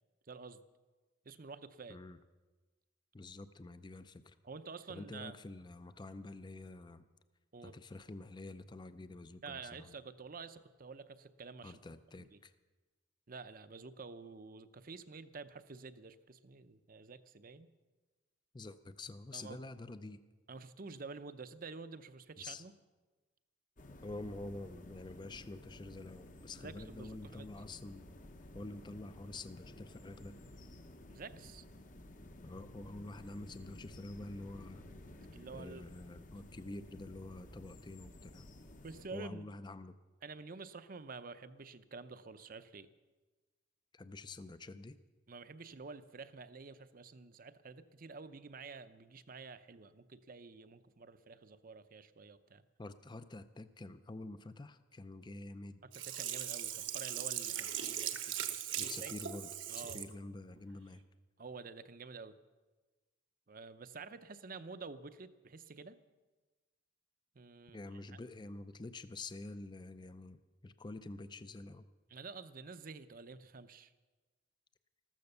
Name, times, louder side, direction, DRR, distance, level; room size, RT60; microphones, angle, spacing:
voice 1, 0.3-0.6 1.3-2.0 4.4-5.3 7.5-7.7 9.4-11.8 12.1-12.4 13.3-17.7 19.3-19.6 20.5-22.7 26.6-27.5 31.1-31.6 35.2-35.8 38.8-39.5 40.2-42.9 45.3-52.6 55.8-59.1 59.7-60.0 61.4-62.4 63.5-66.0 67.3-67.8 68.1-68.2 72.1-73.9, right 4 dB, 45° right, 12 dB, 0.7 m, -49 dB
voice 2, 3.1-4.3 4.9-7.1 7.6-9.9 11.6-12.5 18.5-20.2 22.4-22.6 24.0-28.1 28.5-30.3 32.4-34.9 35.5-38.5 39.1-39.9 43.9-45.0 52.8-55.8 58.7-61.0 67.7-70.4 70.6-71.8, left 2 dB, 25° left, 12 dB, 0.5 m, -47 dB
sound 1, 23.8-39.1, left 1 dB, 45° left, 1.0 m, -54 dB
Sink (filling or washing), 55.9-60.1 60.6-60.7, right 10 dB, 75° right, 1.2 m, -39 dB
14.0 x 14.0 x 6.7 m, 1.2 s
head